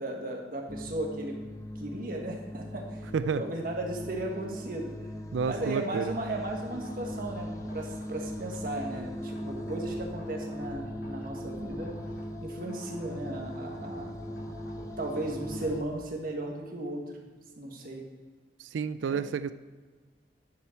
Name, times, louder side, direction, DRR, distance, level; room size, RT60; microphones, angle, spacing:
voice 1, 0.0-1.4 1.8-3.0 3.4-4.9 5.4-11.9 12.4-14.2 15.0-17.2 17.6-18.0 19.0-19.2, right 1 dB, 50° right, 1 dB, 1.7 m, -36 dB
sound 1, 0.7-15.8, equal, 15° left, 0.6 m, -39 dB
voice 2, 5.3-6.1 18.6-19.5, right 6 dB, 90° right, 13 dB, 0.4 m, -30 dB
sound 2, 5.9-12.3 12.6-15.7, equal, 80° left, 2.2 m, -48 dB
10.5 x 7.4 x 4.6 m, 1.4 s
head